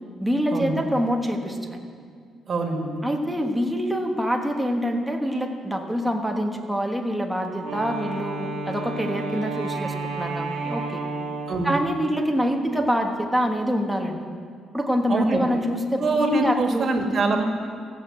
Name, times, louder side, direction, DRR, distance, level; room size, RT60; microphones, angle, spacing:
voice 1, 0.2-1.8 3.0-11.0 11.6-14.2 14.7-16.9, equal, 5° right, 2 dB, 1.4 m, -25 dB
voice 2, 2.5-2.9 11.5-11.7 15.1-15.4 16.0-17.4, right 3 dB, 45° right, 3 dB, 1.9 m, -23 dB
Wind instrument woodwind instrument, 7.6-11.9, right 3 dB, 90° right, 1.5 m, -31 dB
15.5 x 6.6 x 7.7 m, 2.1 s
cardioid pair, 90°, 0 cm